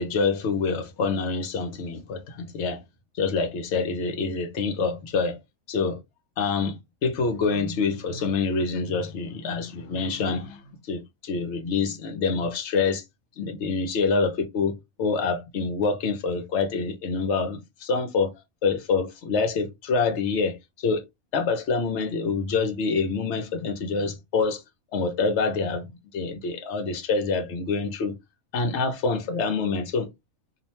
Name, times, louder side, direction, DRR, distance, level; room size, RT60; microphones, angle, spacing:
voice 1, 0.0-2.8 3.2-5.4 5.7-6.0 6.4-13.0 13.4-18.3 18.6-21.0 21.3-24.6 24.9-25.9 26.1-28.1 28.5-30.1, left 4 dB, 60° left, 0.9 m, -26 dB
2.8 x 2.1 x 2.9 m
omnidirectional pair, 1.5 m